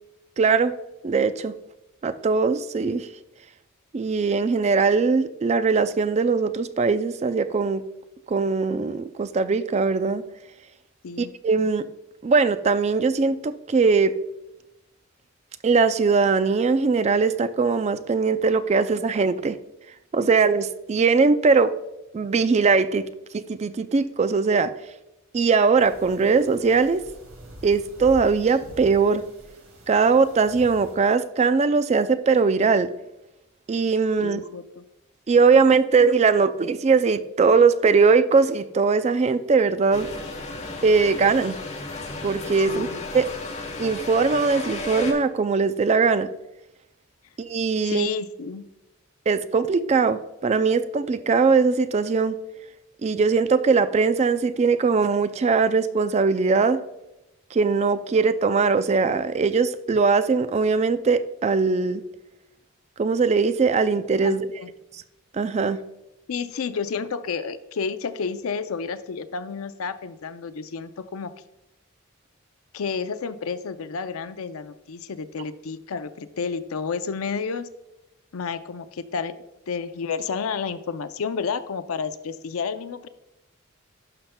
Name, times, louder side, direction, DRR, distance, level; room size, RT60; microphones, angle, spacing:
voice 1, 0.4-0.8 1.0-1.5 2.0-3.1 3.9-7.8 8.3-10.2 11.2-11.9 12.2-14.1 15.6-19.6 20.1-21.7 22.1-23.1 23.3-24.7 25.3-27.0 27.6-29.2 29.9-32.9 33.7-34.4 35.3-40.1 40.8-41.6 42.2-42.9 43.1-43.3 43.8-46.3 47.4-48.1 49.3-52.4 53.0-56.8 57.5-62.0 63.0-64.5 65.3-65.8, right 4 dB, 30° right, 12 dB, 0.3 m, -20 dB
sound 1, 25.7-30.9, equal, 75° right, 2.2 m, -44 dB
voice 2, 34.2-34.8 42.7-43.0 47.8-48.6 64.2-64.7 66.3-71.3 72.7-77.7 78.3-79.3 79.7-83.1, left 5 dB, 85° left, 12 dB, 0.5 m, -31 dB
sound 2, 39.9-45.1, left 3 dB, 35° left, 1.1 m, -34 dB
12.0 x 5.7 x 2.2 m, 0.93 s
head